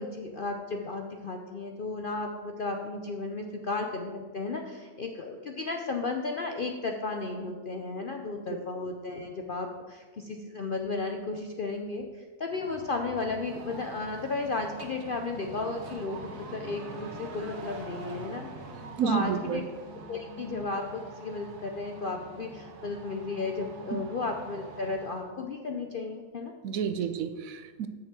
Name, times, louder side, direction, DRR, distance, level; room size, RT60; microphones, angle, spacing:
voice 1, 0.0-18.5 19.0-19.6 20.1-26.5, left 3 dB, 60° left, 3 dB, 0.6 m, -34 dB
sound 1, 12.5-25.3, right 3 dB, 85° right, 1.6 m, -45 dB
voice 2, 19.0-19.6 23.9-24.0 26.6-27.9, right 7 dB, 70° right, 10 dB, 1.0 m, -30 dB
6.7 x 5.9 x 7.3 m, 1.4 s
omnidirectional pair, 1.6 m